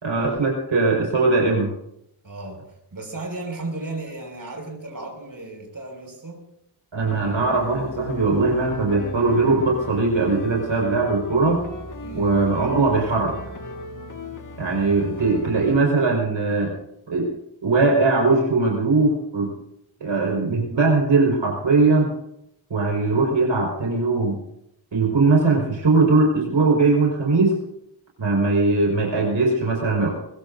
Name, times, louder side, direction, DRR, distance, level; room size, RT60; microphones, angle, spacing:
voice 1, 0.0-1.7 6.9-11.6 12.1-13.4 14.6-16.7 17.1-17.3 17.6-19.5 20.0-22.1 22.7-24.4 24.9-27.6 28.2-30.1, right 3 dB, 70° right, -1 dB, 5.0 m, -20 dB
voice 2, 2.2-2.6 2.9-6.4 12.0-12.4, right 2 dB, 45° right, 0 dB, 5.9 m, -35 dB
sound 1, 7.0-15.8, left 2 dB, 40° left, 1.8 m, -37 dB
23.0 x 21.5 x 2.7 m, 0.78 s
wide cardioid pair, 100°, 47 cm